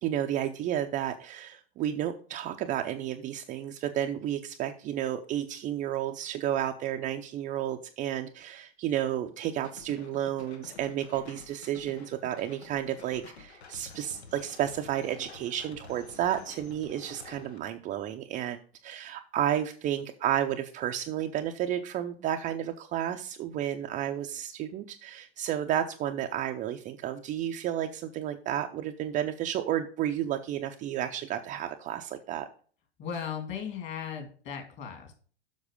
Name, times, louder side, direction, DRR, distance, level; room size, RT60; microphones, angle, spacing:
voice 1, 0.0-32.5, right 11 dB, 25° right, 5 dB, 0.5 m, -32 dB
sound 1, 9.6-17.6, left 5 dB, 85° left, 1.5 m, -50 dB
voice 2, 33.0-35.1, left 7 dB, 35° left, 5 dB, 2.5 m, -37 dB
7.3 x 6.1 x 5.0 m, 0.43 s
hypercardioid pair, 120°, 32 cm